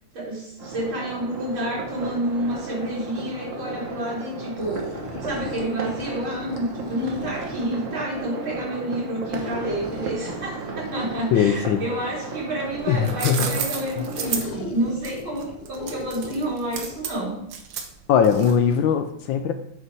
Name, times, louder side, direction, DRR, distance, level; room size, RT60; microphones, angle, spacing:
voice 1, 0.1-4.8 5.2-17.4, right 1 dB, 70° right, -4 dB, 3.8 m, -29 dB
sound 1, 0.6-14.5, right 3 dB, 45° right, 1.3 m, -35 dB
sound 2, 4.6-7.9 9.4-13.2 14.1-17.1, left 2 dB, 90° left, 1.9 m, -39 dB
voice 2, 11.3-11.8 12.9-13.5 18.1-19.5, left 7 dB, 75° left, 7 dB, 1.3 m, -20 dB
sound 3, 12.8-18.8, right 7 dB, 90° right, 1.8 m, -32 dB
8.2 x 5.5 x 4.7 m, 0.75 s
omnidirectional pair, 2.3 m